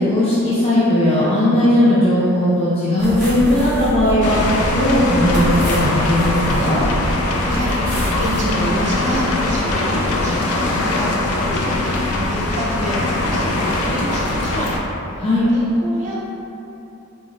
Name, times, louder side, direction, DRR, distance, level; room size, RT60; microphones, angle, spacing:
voice 1, 0.0-6.8 15.2-15.4, left 1 dB, 25° left, -10 dB, 0.5 m, -17 dB
sound 1, 3.0-8.4, equal, 10° left, 1.0 m, -26 dB
sound 2, 4.2-14.8, left 2 dB, 80° left, 0.4 m, -21 dB
voice 2, 7.0-14.7 15.1-15.2 15.5-16.2, equal, 35° right, -7 dB, 0.7 m, -28 dB
3.7 x 3.2 x 2.5 m, 2.9 s
head